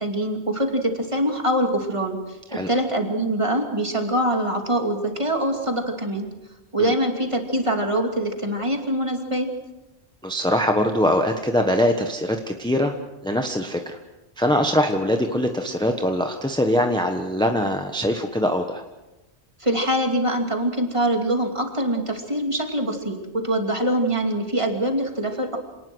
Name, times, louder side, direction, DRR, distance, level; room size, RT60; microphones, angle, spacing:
voice 1, 0.0-2.2 2.5-6.3 6.7-9.5 19.6-25.6, right 1 dB, 25° right, 3 dB, 2.7 m, -24 dB
voice 2, 10.2-12.9 13.2-14.0 14.4-18.8, left 1 dB, 5° left, 4 dB, 1.2 m, -22 dB
27.0 x 19.0 x 6.3 m, 1.0 s
omnidirectional pair, 1.1 m